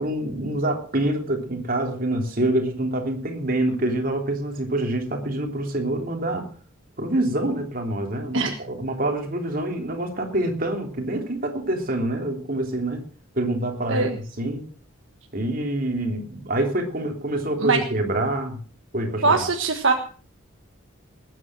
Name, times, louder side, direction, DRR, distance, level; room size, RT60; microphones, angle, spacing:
voice 1, 0.0-6.5 7.0-13.1 13.3-14.7 15.3-18.6 18.9-19.4, right 1 dB, 45° right, 3 dB, 3.3 m, -26 dB
voice 2, 19.2-19.9, right 4 dB, 65° right, 4 dB, 1.5 m, -21 dB
20.0 x 9.4 x 6.1 m, 0.43 s
head